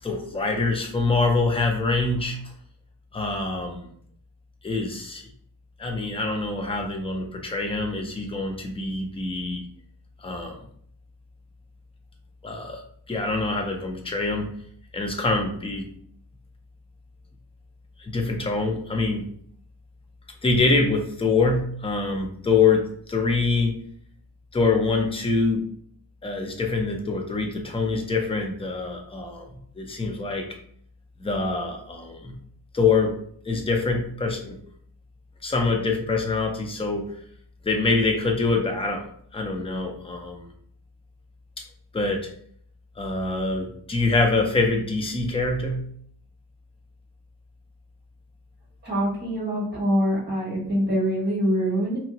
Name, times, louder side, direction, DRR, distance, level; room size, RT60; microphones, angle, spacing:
voice 1, 0.0-2.4 3.1-3.9 4.6-5.2 5.8-9.6 10.2-10.6 12.4-12.8 13.1-14.5 14.9-15.9 18.0-19.2 20.4-23.8 24.5-25.6 26.2-29.5 29.8-30.5 31.2-32.4 32.7-33.2 33.4-34.6 35.4-37.1 37.6-39.1 39.3-40.5 41.9-42.3 43.0-45.8, left 3 dB, 15° left, 2 dB, 0.4 m, -25 dB
voice 2, 48.8-52.0, equal, 25° right, -5 dB, 1.3 m, -24 dB
2.9 x 2.5 x 2.8 m, 0.62 s
wide cardioid pair, 170°, 41 cm